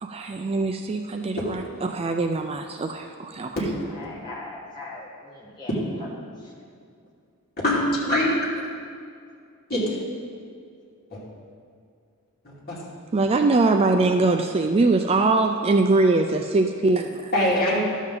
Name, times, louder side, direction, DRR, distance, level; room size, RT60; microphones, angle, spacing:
voice 1, 0.0-3.5 13.1-17.3, right 3 dB, 25° right, 5 dB, 0.3 m, -22 dB
voice 2, 3.9-6.1 6.4-6.5, left 2 dB, 20° left, -5 dB, 1.6 m, -40 dB
voice 3, 7.6-8.4 9.7-9.8 11.1-11.2 12.4-12.8 17.3-17.8, left 1 dB, 45° left, -6 dB, 2.6 m, -22 dB
12.0 x 7.3 x 3.9 m, 2.3 s
head